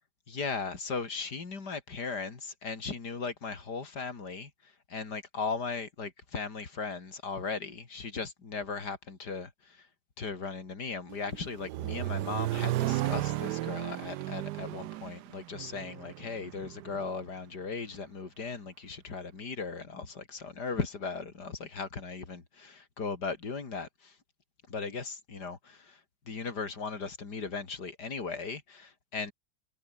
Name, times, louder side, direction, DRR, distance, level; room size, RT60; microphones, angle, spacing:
voice 1, 0.3-9.9 10.2-24.2 24.7-29.3, left 4 dB, 70° left, 3.7 m, -37 dB
Accelerating revving vroom, 11.1-17.1, right 16 dB, 75° right, 1.1 m, -34 dB
omnidirectional pair, 1.8 m